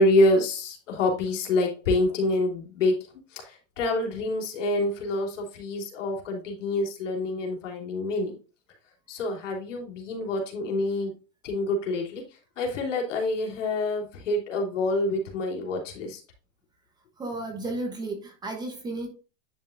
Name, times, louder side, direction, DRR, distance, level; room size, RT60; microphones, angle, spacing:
voice 1, 0.0-3.0 3.3-8.3 9.1-11.1 11.4-12.2 12.6-16.2, left 2 dB, 80° left, 0 dB, 3.1 m, -26 dB
voice 2, 17.2-19.1, right 2 dB, 10° right, 3 dB, 1.0 m, -33 dB
9.9 x 5.6 x 2.6 m, 0.35 s
supercardioid pair, 160°, 37 cm